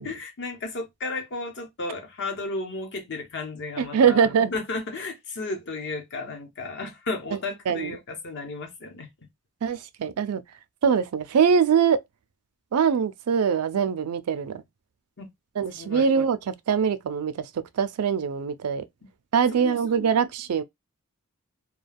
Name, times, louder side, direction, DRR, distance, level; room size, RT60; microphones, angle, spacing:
voice 1, 0.0-9.1 15.2-15.3 15.7-16.1 19.5-19.8, left 3 dB, 55° left, 0.9 m, -34 dB
voice 2, 3.8-4.5 7.7-7.9 9.6-10.4 10.8-12.0 12.7-14.6 15.6-17.4 17.8-18.8 19.3-20.6, right 6 dB, 85° right, 0.4 m, -23 dB
2.3 x 2.2 x 3.3 m
head